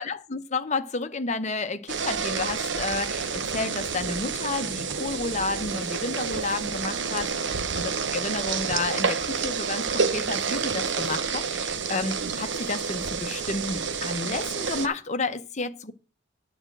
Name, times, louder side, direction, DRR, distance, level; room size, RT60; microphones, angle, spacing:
voice 1, 0.0-7.5 7.8-15.9, left 3 dB, 35° left, 0.8 m, -31 dB
sound 1, 1.9-14.9, right 5 dB, 60° right, 0.8 m, -29 dB
8.8 x 4.9 x 7.7 m
head